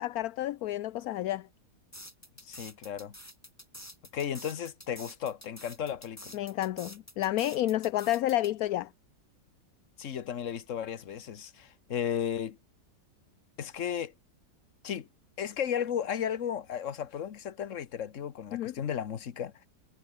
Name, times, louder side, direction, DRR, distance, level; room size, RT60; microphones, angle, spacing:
voice 1, 0.0-1.5 6.3-8.9 18.5-18.7, left 14 dB, 65° left, 1.0 m, -30 dB
sound 1, 1.9-8.5, equal, 10° left, 6.6 m, -48 dB
voice 2, 2.4-3.1 4.1-6.4 10.0-12.6 13.6-14.1 14.8-15.1 15.4-19.7, left 8 dB, 50° left, 1.4 m, -34 dB
omnidirectional pair, 1.9 m